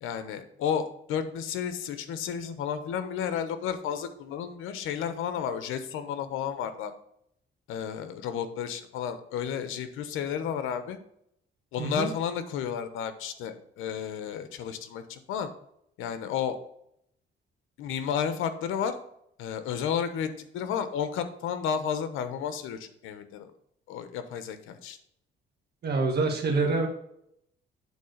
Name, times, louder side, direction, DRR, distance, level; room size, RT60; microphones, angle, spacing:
voice 1, 0.0-6.9 7.7-11.0 11.7-15.5 16.0-16.6 17.8-19.0 19.4-23.5 23.9-25.0, left 8 dB, 90° left, 10 dB, 0.9 m, -32 dB
voice 2, 11.8-12.1 25.8-26.9, right 3 dB, 55° right, 2 dB, 1.5 m, -26 dB
8.4 x 3.9 x 6.4 m, 0.74 s
cardioid pair, 90°, 20 cm